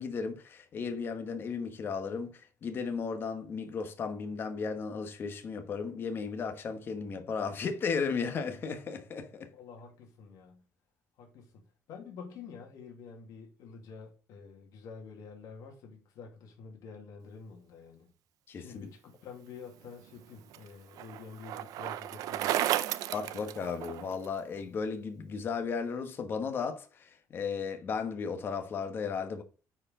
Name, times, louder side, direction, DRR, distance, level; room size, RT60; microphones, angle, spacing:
voice 1, 0.0-9.5 18.5-18.9 23.1-29.4, left 5 dB, 40° left, 1.2 m, -35 dB
voice 2, 9.5-10.6 11.2-11.6 11.9-18.1 18.5-22.8, left 5 dB, 80° left, 2.3 m, -48 dB
Bicycle, 19.8-24.3, right 13 dB, 85° right, 0.6 m, -34 dB
9.6 x 4.6 x 3.7 m
cardioid pair, 165°, 6 cm